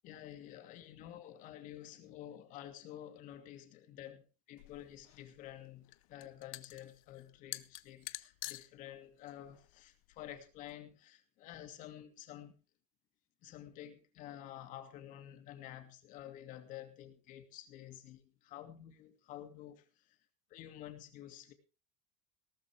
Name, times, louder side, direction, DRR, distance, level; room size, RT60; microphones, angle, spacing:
voice 1, 0.0-12.5 13.4-20.2 20.5-21.5, left 12 dB, 50° left, 2.5 m, -50 dB
sound 1, 4.6-10.7, left 19 dB, 85° left, 0.8 m, -49 dB
18.0 x 13.0 x 3.5 m
cardioid pair, 145°, 17 cm